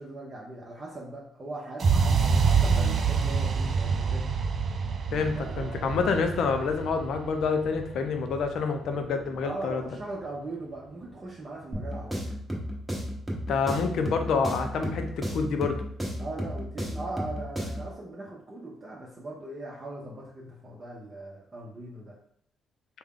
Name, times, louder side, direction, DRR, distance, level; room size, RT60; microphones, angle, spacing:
voice 1, 0.0-4.3 5.3-6.1 9.4-12.3 16.2-22.1, right 2 dB, 35° right, -4 dB, 0.7 m, -39 dB
sound 1, 1.8-9.7, right 5 dB, 55° right, 0.3 m, -27 dB
voice 2, 5.1-9.9 13.5-15.8, left 5 dB, 75° left, 6 dB, 0.5 m, -27 dB
sound 2, 11.7-17.9, equal, 5° right, 1.0 m, -34 dB
3.5 x 2.2 x 3.6 m, 0.67 s
cardioid pair, 90°, 0 cm